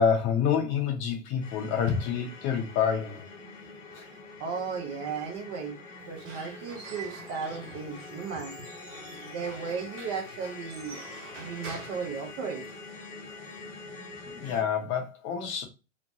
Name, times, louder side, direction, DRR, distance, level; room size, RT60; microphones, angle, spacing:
voice 1, 0.0-3.3 3.9-4.0 14.3-15.6, left 7 dB, 30° left, 0.7 m, -27 dB
sound 1, 1.4-14.6, left 3 dB, 75° left, 1.3 m, -45 dB
voice 2, 4.4-5.8 6.1-8.5 9.3-11.0 11.4-12.7, right 5 dB, 35° right, 0.7 m, -35 dB
Squeak / Wood, 6.0-12.9, right 3 dB, 75° right, 1.1 m, -47 dB
3.0 x 2.1 x 2.7 m
hypercardioid pair, 105°, 38 cm